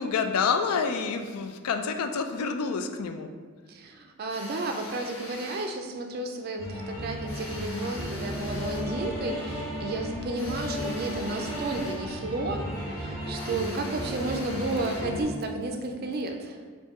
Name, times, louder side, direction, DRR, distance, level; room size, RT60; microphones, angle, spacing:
voice 1, 0.0-3.3, left 5 dB, 90° left, 7 dB, 0.4 m, -28 dB
voice 2, 3.7-16.6, right 2 dB, 45° right, 4 dB, 0.3 m, -32 dB
sound 1, 4.3-5.8 7.3-8.9 10.3-12.1 13.3-15.2, left 1 dB, 60° left, 0.9 m, -43 dB
sound 2, 6.6-15.2, equal, 15° left, 0.9 m, -34 dB
3.5 x 2.6 x 4.1 m, 1.5 s
head